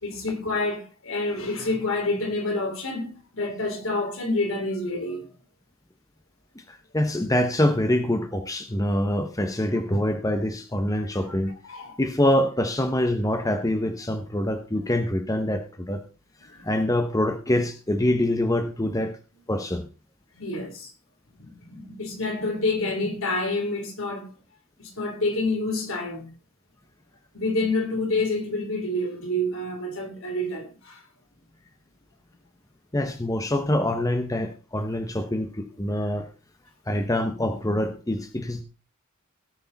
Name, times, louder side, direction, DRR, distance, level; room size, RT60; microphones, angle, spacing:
voice 1, 0.0-5.3 11.3-11.4 11.6-12.0 16.5-16.7 18.8-19.1 20.3-20.9 21.4-24.3 24.8-26.3 27.3-31.0, left 2 dB, 65° left, 3.3 m, -28 dB
voice 2, 6.6-11.6 12.0-16.0 16.4-19.2 19.5-19.9 32.9-36.3 36.9-38.6, left 1 dB, 15° left, 0.9 m, -25 dB
17.0 x 6.7 x 4.0 m
head